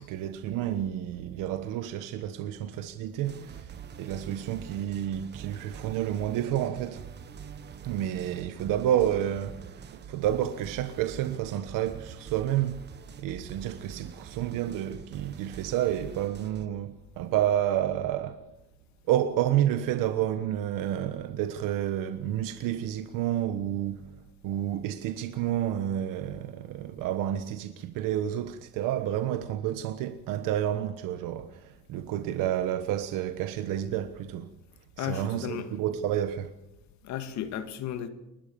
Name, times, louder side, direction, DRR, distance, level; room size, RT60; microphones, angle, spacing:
voice 1, 0.0-7.1 7.8-12.8 13.2-18.4 19.1-24.1 24.4-34.5 35.0-36.5, right 11 dB, 70° right, 1.3 m, -30 dB
sound 1, 3.2-16.7, right 7 dB, 30° right, 1.2 m, -45 dB
voice 2, 35.0-35.7 37.0-38.1, left 10 dB, 55° left, 2.2 m, -34 dB
29.5 x 12.5 x 7.1 m
cardioid pair, 170°, 33 cm